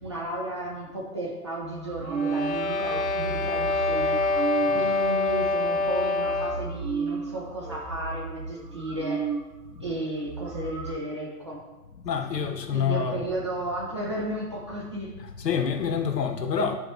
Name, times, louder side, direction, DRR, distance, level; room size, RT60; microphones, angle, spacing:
voice 1, 0.0-4.2 4.7-9.2 9.8-11.6 12.7-15.1, right 1 dB, 20° right, -6 dB, 0.7 m, -33 dB
sound 1, 1.6-9.5 9.8-9.9 10.2-10.9, right 5 dB, 70° right, 1.1 m, -34 dB
sound 2, 2.0-6.8, left 2 dB, 45° left, 0.6 m, -26 dB
voice 2, 12.1-13.2 15.4-16.7, left 7 dB, 85° left, 6 dB, 1.0 m, -26 dB
9.8 x 3.4 x 3.2 m, 1.1 s
hypercardioid pair, 170°, 48 cm